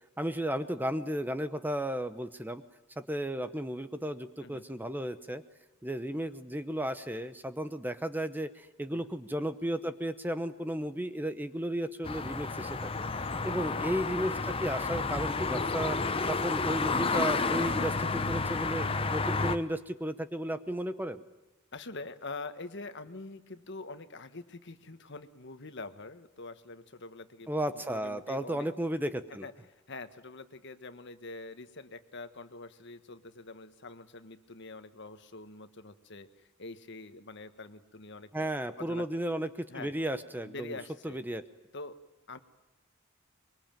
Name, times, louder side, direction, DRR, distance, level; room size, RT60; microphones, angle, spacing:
voice 1, 0.2-2.6 3.0-5.4 5.8-13.0 13.4-16.0 16.3-21.2 27.5-29.5 38.3-40.8 41.0-41.4, right 1 dB, 10° right, 11 dB, 0.8 m, -34 dB
sound 1, 12.0-19.6, left 4 dB, 25° left, 0.9 m, -31 dB
voice 2, 21.7-27.5 27.7-28.7 29.4-39.1 39.7-39.9 40.4-41.2 41.7-42.0 42.3-42.4, left 3 dB, 55° left, 10 dB, 1.5 m, -45 dB
24.0 x 22.5 x 9.1 m, 1.1 s
head